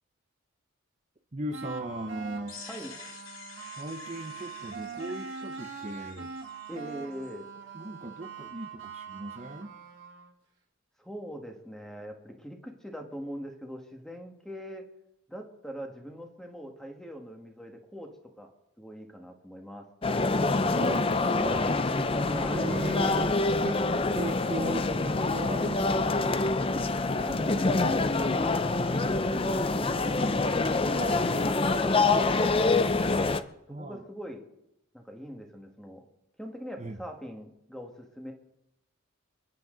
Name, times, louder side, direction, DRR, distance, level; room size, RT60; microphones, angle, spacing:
voice 1, 1.3-2.6 3.8-6.3 7.7-9.8 20.7-21.8 22.5-23.4 23.6-23.8 24.1-26.2 30.9-31.5 33.7-34.0 36.8-37.0, right 1 dB, 30° right, 5 dB, 0.8 m, -38 dB
sound 1, 1.5-10.3, right 5 dB, 65° right, 2.3 m, -43 dB
sound 2, 2.5-7.3, left 5 dB, 75° left, 2.5 m, -49 dB
voice 2, 6.7-7.5 11.0-14.8 15.3-18.5 18.8-19.9 22.1-22.7 27.0-30.4 30.8-33.2 33.7-34.4 34.9-36.0 36.4-38.3, equal, ahead, 2 dB, 1.8 m, -42 dB
sound 3, 20.0-33.4, left 3 dB, 25° left, 0.5 m, -26 dB
28.5 x 9.8 x 4.0 m, 0.87 s
head